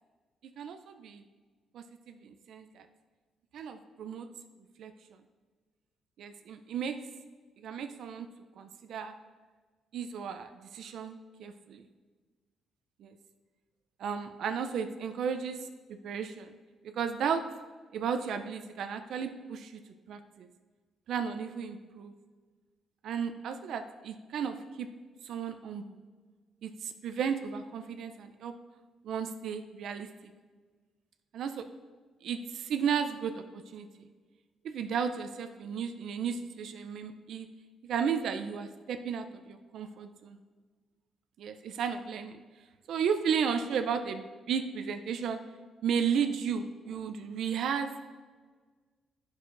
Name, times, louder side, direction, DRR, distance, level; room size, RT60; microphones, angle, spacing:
voice 1, 0.6-1.2 1.7-2.9 3.5-4.3 4.8-4.9 6.2-7.0 7.6-8.3 8.6-9.2 9.9-11.9 13.0-13.2 14.0-16.5 16.8-17.4 17.9-19.8 20.1-20.5 21.1-22.2 23.0-24.9 25.2-26.0 26.6-28.5 29.0-30.1 31.3-31.6 32.2-34.1 34.6-37.5 37.8-40.4 41.4-42.4 42.9-45.4 45.8-47.9, right 7 dB, 70° right, 8 dB, 0.4 m, -34 dB
9.2 x 6.3 x 2.5 m, 1.5 s
cardioid pair, 90°, 0 cm